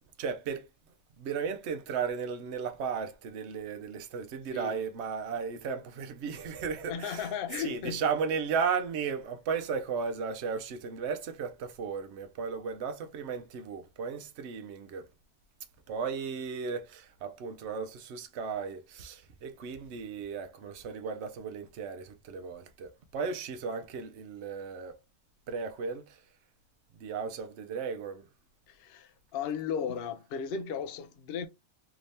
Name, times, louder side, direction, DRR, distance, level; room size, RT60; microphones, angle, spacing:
voice 1, 0.2-0.7 1.2-15.1 15.9-25.0 25.5-26.2 26.9-28.2, right 6 dB, 60° right, 0.8 m, -35 dB
voice 2, 6.9-8.1 22.4-22.5 28.7-31.5, left 7 dB, 65° left, 0.6 m, -35 dB
3.5 x 2.7 x 3.3 m
omnidirectional pair, 1.6 m